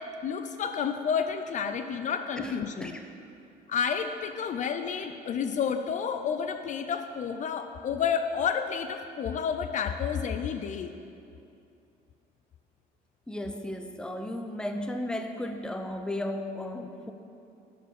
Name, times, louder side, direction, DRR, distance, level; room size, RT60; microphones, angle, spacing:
voice 1, 0.2-3.0 3.7-10.9, left 7 dB, 45° left, 7 dB, 0.5 m, -30 dB
voice 2, 2.4-3.1 13.3-17.1, left 1 dB, 5° left, 5 dB, 0.7 m, -35 dB
12.0 x 5.1 x 5.8 m, 2.6 s
cardioid pair, 110°, 17 cm